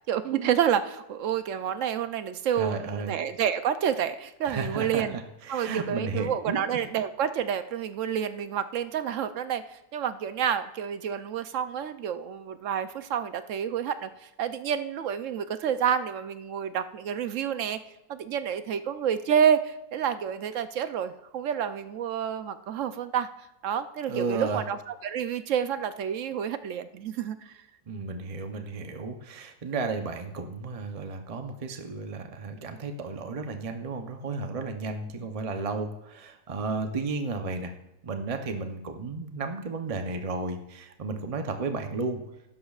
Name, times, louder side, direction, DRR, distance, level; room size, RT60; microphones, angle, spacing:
voice 1, 0.1-5.2 5.5-17.8 18.1-23.3 23.6-27.6, right 8 dB, 65° right, 11 dB, 0.8 m, -29 dB
voice 2, 2.6-3.1 4.4-5.0 5.5-6.6 24.1-24.6 27.9-37.7 38.0-42.2, right 4 dB, 40° right, 5 dB, 0.5 m, -33 dB
15.5 x 12.5 x 2.4 m, 0.92 s
omnidirectional pair, 1.6 m